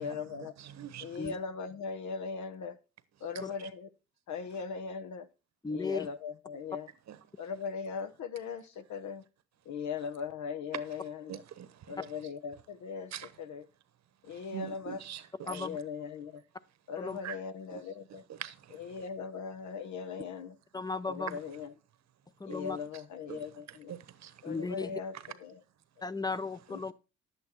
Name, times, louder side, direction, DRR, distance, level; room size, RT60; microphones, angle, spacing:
voice 1, 0.0-0.5 1.0-2.8 3.2-3.9 4.3-5.3 5.7-6.9 7.4-9.3 9.6-11.4 11.9-13.6 14.2-15.0 15.4-16.4 16.9-18.3 18.7-20.6 21.1-21.7 22.4-23.9 24.4-25.6 26.7-26.9, left 5 dB, 70° left, 1.1 m, -39 dB
voice 2, 0.6-1.2 7.1-7.2 11.3-11.9 13.1-13.3 14.2-15.7 17.2-17.4 17.7-17.8 18.3-19.0 22.5-22.6 23.3-24.5, right 10 dB, 65° right, 1.1 m, -44 dB
voice 3, 5.6-6.1 15.5-15.8 17.0-17.2 20.7-21.4 22.4-22.8 24.4-24.9 26.0-26.9, left 4 dB, 15° left, 0.6 m, -35 dB
10.5 x 8.5 x 4.4 m
cardioid pair, 90°, 30 cm